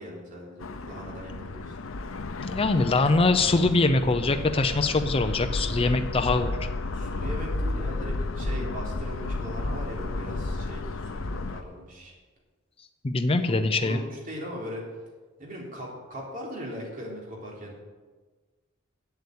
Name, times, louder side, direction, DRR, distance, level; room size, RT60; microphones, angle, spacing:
voice 1, 0.0-1.8 6.9-12.1 13.5-14.8 15.4-17.8, equal, 45° right, -3 dB, 3.5 m, -39 dB
sound 1, 0.6-11.6, left 2 dB, 85° left, 0.7 m, -32 dB
voice 2, 2.4-6.5 13.0-14.0, left 3 dB, 30° left, 7 dB, 0.5 m, -23 dB
8.4 x 8.1 x 8.4 m, 1.3 s
head